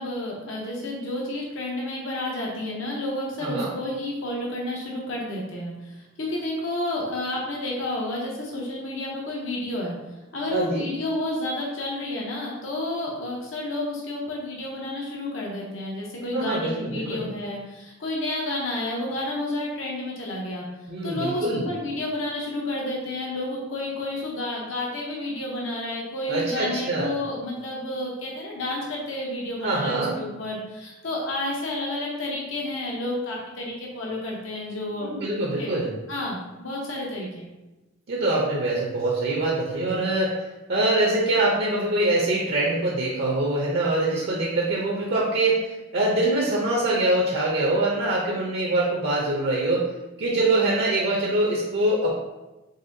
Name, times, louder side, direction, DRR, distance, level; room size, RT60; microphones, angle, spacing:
voice 1, 0.0-5.7 6.2-9.9 10.3-20.6 21.0-35.1 35.6-35.8 36.1-37.5, left 1 dB, 70° left, -3 dB, 0.8 m, -30 dB
voice 2, 3.4-3.7 10.5-10.9 16.3-17.2 20.9-21.7 26.3-27.1 29.6-30.2 35.0-35.9 38.1-40.4 40.7-49.8 50.2-52.1, right 2 dB, 60° right, -4 dB, 0.6 m, -24 dB
4.0 x 3.4 x 2.6 m, 1.1 s
head